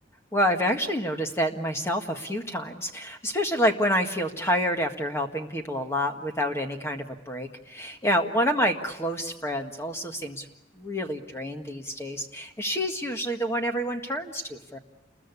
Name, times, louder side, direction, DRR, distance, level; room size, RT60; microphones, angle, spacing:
voice 1, 0.3-10.5 10.8-14.8, equal, 15° left, 4 dB, 1.7 m, -28 dB
29.0 x 21.5 x 8.3 m, 0.89 s
head